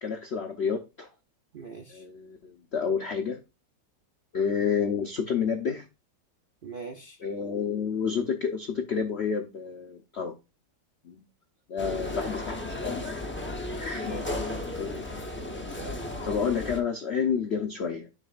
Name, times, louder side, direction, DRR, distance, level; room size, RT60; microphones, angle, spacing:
voice 1, 0.0-1.1 1.9-3.4 4.3-5.8 7.2-10.3 11.0-11.2 11.7-13.1 13.7-14.2 14.7-15.2 16.2-18.1, left 6 dB, 65° left, 0.6 m, -30 dB
voice 2, 1.5-2.0 6.6-7.2 12.1-12.2 14.1-14.7 15.7-16.0, right 4 dB, 80° right, 0.4 m, -41 dB
sound 1, 11.8-16.8, left 2 dB, 20° left, 0.3 m, -34 dB
9.9 x 4.7 x 2.4 m
omnidirectional pair, 2.0 m